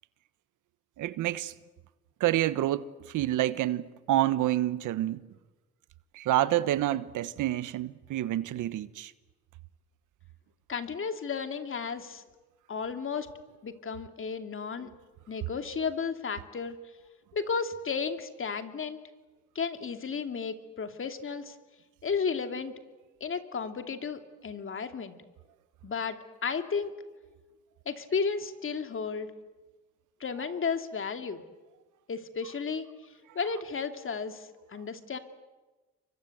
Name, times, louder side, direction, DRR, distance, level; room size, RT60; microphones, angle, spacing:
voice 1, 1.0-1.5 2.2-2.9 3.1-5.2 6.1-9.1, right 14 dB, 80° right, 1.2 m, -28 dB
voice 2, 10.7-12.2 12.7-13.3 13.6-14.9 15.3-16.8 17.3-19.0 19.5-21.5 22.0-22.7 23.2-25.2 25.8-26.2 26.4-26.9 27.9-29.3 30.2-31.4 32.1-32.9 33.3-35.2, left 5 dB, 45° left, 2.8 m, -33 dB
29.5 x 24.5 x 8.0 m
cardioid pair, 90°, 30 cm